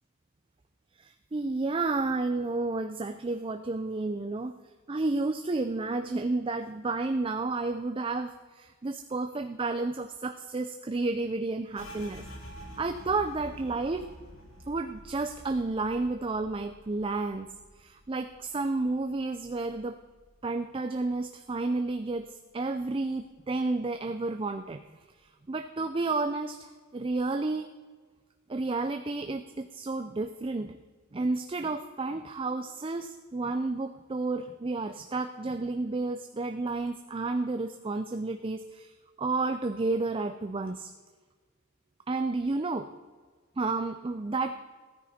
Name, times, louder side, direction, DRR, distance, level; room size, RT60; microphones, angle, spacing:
voice 1, 1.0-4.6 4.9-12.3 12.8-14.1 14.7-17.5 17.8-20.0 20.4-24.8 25.5-27.7 28.5-30.8 31.1-38.9 39.2-40.9 42.1-42.9 43.6-44.6, right 3 dB, 25° right, 8 dB, 0.4 m, -31 dB
sound 1, 11.8-21.2 21.5-22.7 23.0-23.5 23.9-24.5, equal, 80° left, 2.5 m, -50 dB
15.5 x 13.5 x 4.3 m, 1.4 s
head